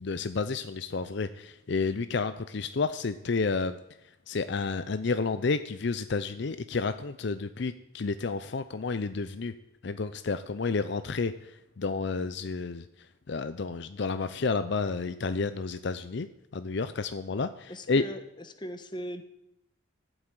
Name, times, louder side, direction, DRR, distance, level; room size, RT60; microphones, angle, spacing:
voice 1, 0.0-3.8 4.3-9.5 9.8-12.8 13.3-16.3 16.5-18.0, left 4 dB, 60° left, 11 dB, 0.5 m, -30 dB
voice 2, 17.7-19.2, equal, 25° left, 8 dB, 1.1 m, -39 dB
12.5 x 8.0 x 9.0 m, 0.84 s
head